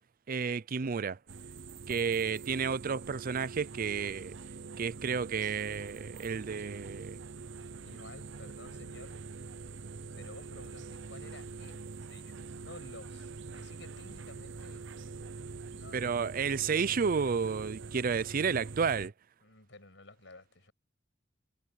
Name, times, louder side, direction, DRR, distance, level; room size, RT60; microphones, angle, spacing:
voice 1, 0.3-1.2 1.9-4.3 4.8-7.2 15.9-19.1, right 6 dB, 50° right, 0.5 m, -31 dB
sound 1, 1.3-19.1, right 4 dB, 70° right, 0.8 m, -44 dB
voice 2, 7.8-9.2 10.1-14.9 15.7-16.3 19.4-20.7, left 2 dB, 70° left, 7.6 m, -53 dB
head